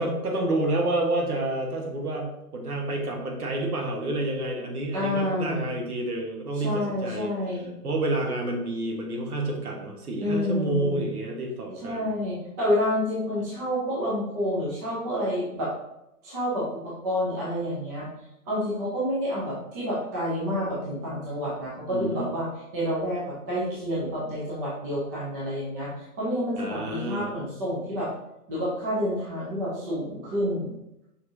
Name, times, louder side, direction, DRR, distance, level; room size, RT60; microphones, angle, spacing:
voice 1, 0.0-7.3 7.8-12.2 21.9-22.3 26.6-27.3, right 2 dB, 70° right, 1 dB, 1.3 m, -29 dB
voice 2, 4.9-5.7 6.5-7.7 10.2-11.0 11.8-15.7 16.2-18.1 18.5-22.5 22.7-28.1 28.5-30.8, equal, 10° right, -7 dB, 0.6 m, -29 dB
5.7 x 3.3 x 2.6 m, 0.86 s
hypercardioid pair, 140°, 47 cm